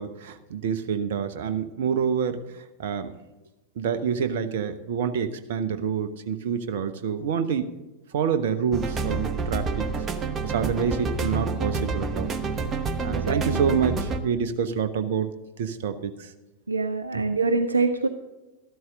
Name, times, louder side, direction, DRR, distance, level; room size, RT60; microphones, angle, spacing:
voice 1, 0.0-3.1 3.8-7.8 8.1-9.9 10.4-12.3 13.0-15.3 15.6-16.3 17.1-17.2, right 7 dB, 55° right, 10 dB, 0.9 m, -27 dB
sound 1, 8.7-14.2, right 4 dB, 25° right, 1.0 m, -28 dB
voice 2, 13.1-13.6 16.7-18.1, right 3 dB, 80° right, 9 dB, 0.5 m, -25 dB
13.0 x 12.5 x 3.7 m, 1.1 s
figure-of-eight pair, 90°, 0 cm